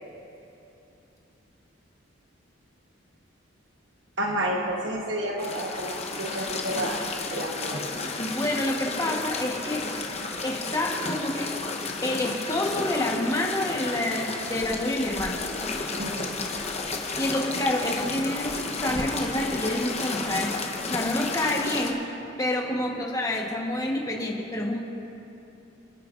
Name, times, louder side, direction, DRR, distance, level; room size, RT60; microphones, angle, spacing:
voice 1, 4.2-7.0 7.3-7.8 8.6-8.7 15.8-16.4 22.7-23.0, right 1 dB, 65° right, 0 dB, 1.2 m, -31 dB
sound 1, 5.4-21.9, left 3 dB, 35° left, 0.9 m, -32 dB
voice 2, 8.2-9.9 10.4-11.5 12.0-15.4 17.2-18.5 18.8-20.5 20.8-22.0 22.4-24.8, left 1 dB, 20° left, -1 dB, 1.2 m, -28 dB
27.0 x 10.0 x 2.5 m, 2.9 s
head